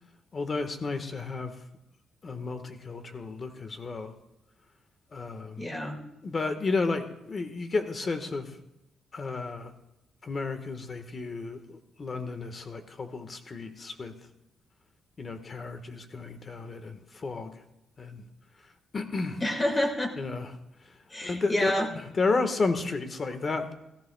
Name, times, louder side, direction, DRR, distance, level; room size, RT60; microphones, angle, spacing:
voice 1, 0.3-1.5 2.2-4.1 5.1-5.7 6.2-8.5 9.1-9.7 10.2-14.1 15.2-17.5 18.0-18.2 18.9-19.4 20.2-20.5 20.8-23.7, left 3 dB, 35° left, 7 dB, 1.4 m, -32 dB
voice 2, 5.6-6.1 19.4-20.1 21.1-21.9, left 1 dB, 20° left, 2 dB, 2.1 m, -28 dB
16.0 x 15.0 x 2.3 m, 0.87 s
cardioid pair, 90°, 0 cm